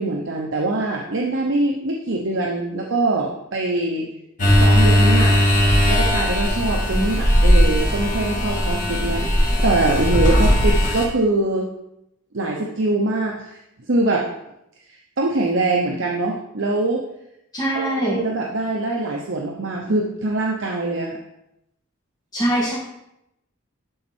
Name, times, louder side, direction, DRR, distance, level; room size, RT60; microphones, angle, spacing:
voice 1, 0.0-4.1 4.6-5.4 5.9-11.7 12.3-13.6 13.9-14.3 15.2-17.1 17.7-21.2, right 2 dB, 60° right, 0 dB, 0.8 m, -23 dB
sound 1, 4.4-11.1, equal, 35° left, 1.9 m, -17 dB
voice 2, 17.5-18.2 22.3-22.7, right 1 dB, 20° left, -9 dB, 1.7 m, -22 dB
11.5 x 4.2 x 4.4 m, 0.83 s
head